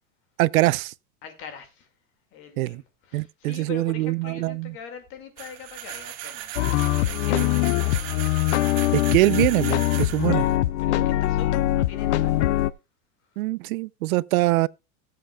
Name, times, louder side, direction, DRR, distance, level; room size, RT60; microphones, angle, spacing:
voice 1, 0.4-0.9 2.6-2.8 3.1-4.7 7.3-7.5 8.9-10.5 13.4-14.7, right 19 dB, 85° right, 0.6 m, -23 dB
voice 2, 1.2-1.9 2.3-8.3 10.8-12.4, left 7 dB, 30° left, 2.1 m, -43 dB
sound 1, 5.4-10.6, right 13 dB, 40° right, 1.7 m, -37 dB
sound 2, 6.6-12.7, left 15 dB, 55° left, 0.5 m, -23 dB
19.0 x 7.8 x 2.3 m
supercardioid pair, 175°, 41 cm